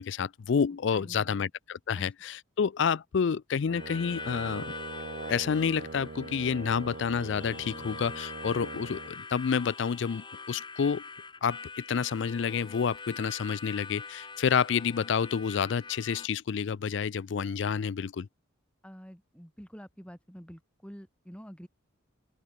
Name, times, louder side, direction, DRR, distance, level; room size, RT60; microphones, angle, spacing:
voice 1, 0.0-4.7 5.3-11.0 11.4-18.3, left 6 dB, 60° left, 0.4 m, -29 dB
voice 2, 0.9-1.5 2.0-2.1 18.8-21.7, equal, 5° left, 7.0 m, -48 dB
Brass instrument, 3.6-9.1, right 3 dB, 55° right, 0.7 m, -42 dB
Harmonica, 3.7-16.3, left 4 dB, 20° left, 3.1 m, -44 dB
open air
head